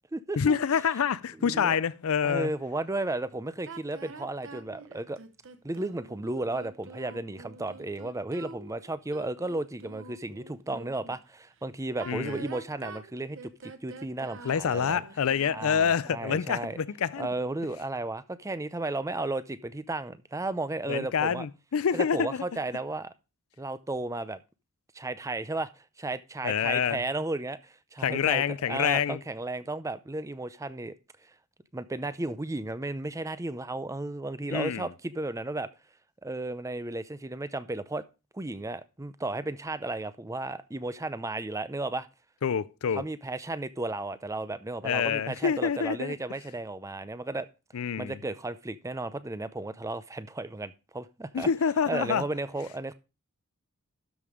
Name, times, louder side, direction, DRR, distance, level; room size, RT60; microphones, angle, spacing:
voice 1, 0.4-2.5 12.1-12.4 14.4-17.3 20.9-22.4 26.4-27.0 28.0-29.2 34.5-34.9 42.4-43.0 44.8-46.1 47.7-48.2 51.3-52.2, left 7 dB, 70° left, 0.4 m, -27 dB
voice 2, 1.4-1.8 2.2-5.2 5.6-15.0 15.5-16.8 17.2-21.5 21.9-23.1 23.6-24.4 24.9-30.9 31.7-35.7 36.2-38.0 38.3-42.1 42.9-47.5 48.0-51.5 51.9-52.9, right 2 dB, 15° right, 0.5 m, -34 dB
sound 1, 3.6-11.2 11.9-15.9, right 4 dB, 60° right, 1.0 m, -46 dB
12.5 x 5.4 x 4.9 m
head